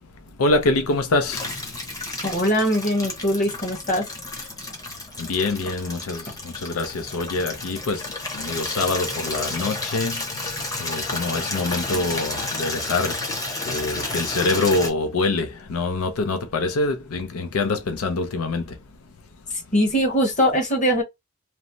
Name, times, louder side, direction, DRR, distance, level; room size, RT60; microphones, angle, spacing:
voice 1, 0.4-1.4 5.2-8.0 8.3-10.2 10.8-13.1 13.7-18.6, left 3 dB, 85° left, 0.6 m, -25 dB
Water tap faucet / Liquid, 1.3-14.9, left 2 dB, 15° left, 0.8 m, -31 dB
voice 2, 2.2-4.1 19.7-21.0, equal, 35° left, 1.1 m, -21 dB
3.2 x 2.0 x 2.6 m
head